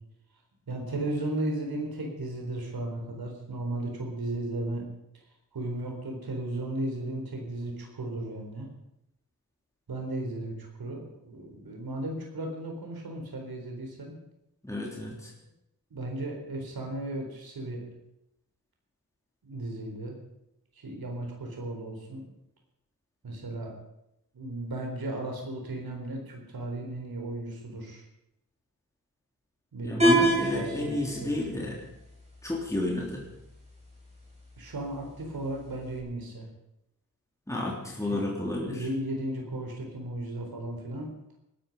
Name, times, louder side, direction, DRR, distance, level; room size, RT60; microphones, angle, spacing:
voice 1, 0.7-4.8 5.5-8.7 9.9-14.1 15.9-17.8 19.4-20.2 20.8-22.2 23.2-23.7 24.3-28.0 29.7-31.3 34.6-36.5 38.1-38.3 38.7-41.1, right 1 dB, 85° right, 2 dB, 4.0 m, -35 dB
voice 2, 14.6-15.3 29.8-31.8 32.4-33.2 37.5-38.9, left 1 dB, 10° left, -2 dB, 3.2 m, -31 dB
sound 1, 30.0-36.0, right 1 dB, 20° right, 6.5 m, -30 dB
21.0 x 12.5 x 5.4 m, 0.82 s
wide cardioid pair, 100°, 35 cm